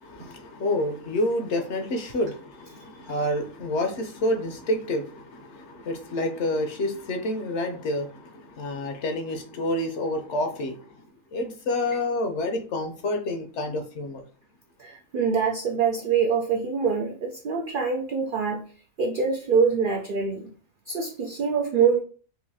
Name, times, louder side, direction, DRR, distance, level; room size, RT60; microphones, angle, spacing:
voice 1, 0.0-10.9 11.3-14.2, left 1 dB, 65° left, 5 dB, 0.9 m, -28 dB
voice 2, 14.8-18.7 19.0-20.5 20.9-22.0, right 6 dB, 80° right, 2 dB, 0.4 m, -24 dB
3.9 x 2.6 x 2.7 m, 0.39 s
omnidirectional pair, 1.4 m